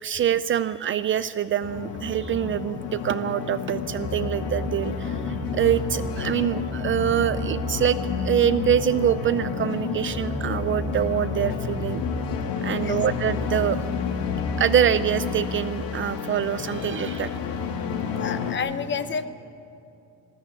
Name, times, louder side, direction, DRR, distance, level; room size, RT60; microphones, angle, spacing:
voice 1, 0.0-12.0 12.6-13.9 14.6-17.4, right 9 dB, 35° right, 14 dB, 0.5 m, -25 dB
sound 1, 1.6-18.6, left 5 dB, 65° left, 2.4 m, -30 dB
voice 2, 18.2-19.3, left 6 dB, 30° left, 11 dB, 0.9 m, -29 dB
20.5 x 16.0 x 9.8 m, 2.6 s
cardioid pair, 150°, 37 cm